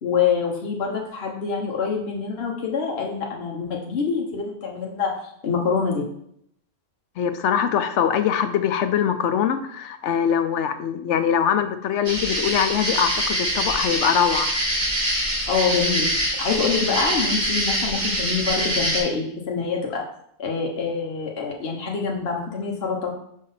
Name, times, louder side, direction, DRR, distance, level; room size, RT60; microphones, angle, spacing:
voice 1, 0.0-5.1 5.4-6.0 15.5-16.1 16.4-20.0 20.4-23.1, left 5 dB, 50° left, -1 dB, 1.2 m, -25 dB
voice 2, 7.2-14.5, left 8 dB, 65° left, 9 dB, 0.8 m, -22 dB
sound 1, 12.1-19.0, equal, 35° right, 2.2 m, -24 dB
5.5 x 3.6 x 5.5 m, 0.70 s
omnidirectional pair, 1.4 m